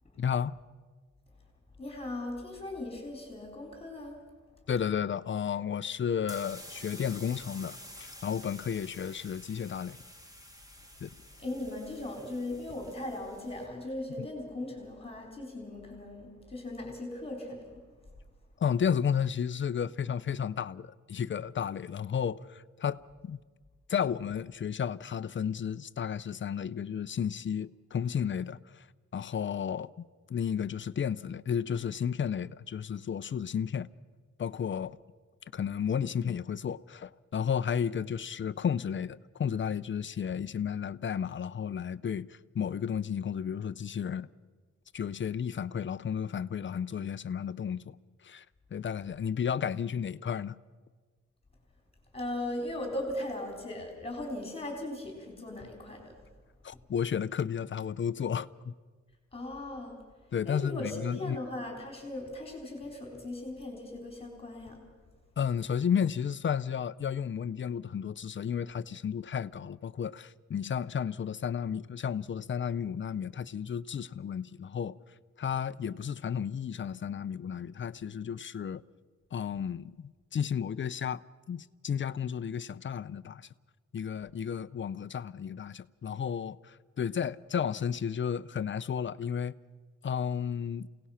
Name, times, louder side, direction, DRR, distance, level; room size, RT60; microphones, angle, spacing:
voice 1, 0.2-0.6 4.7-10.0 11.0-11.1 14.2-14.3 18.6-23.4 23.9-28.9 29.1-33.9 34.4-35.0 35.5-44.3 44.9-48.0 48.2-48.4 48.7-50.6 56.6-58.7 60.3-61.4 65.4-75.0 75.4-78.8 79.3-81.2 81.5-83.5 83.9-89.6 90.0-90.9, left 7 dB, 40° left, 0.5 m, -33 dB
voice 2, 1.8-4.2 11.4-17.8 52.1-56.1 59.3-60.0 60.5-64.8, left 1 dB, 20° left, 3.9 m, -38 dB
sound 1, 6.2-13.7, equal, 10° right, 2.1 m, -50 dB
28.0 x 18.0 x 5.7 m
wide cardioid pair, 145°, 30 cm